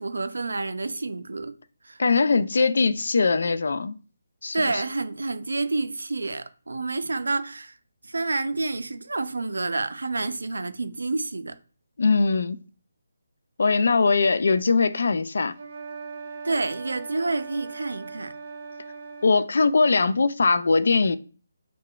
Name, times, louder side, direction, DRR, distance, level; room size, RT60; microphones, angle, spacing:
voice 1, 0.0-1.6 1.8-2.0 4.5-7.7 8.0-11.6 16.4-18.3, right 3 dB, 90° right, 0.4 m, -29 dB
voice 2, 2.0-4.0 4.4-4.8 12.0-12.6 13.6-15.5 19.2-21.2, left 4 dB, 65° left, 0.3 m, -21 dB
sound 1, 15.5-19.5, right 4 dB, 35° right, 0.7 m, -39 dB
4.7 x 2.2 x 2.3 m
hypercardioid pair, 165°, 0 cm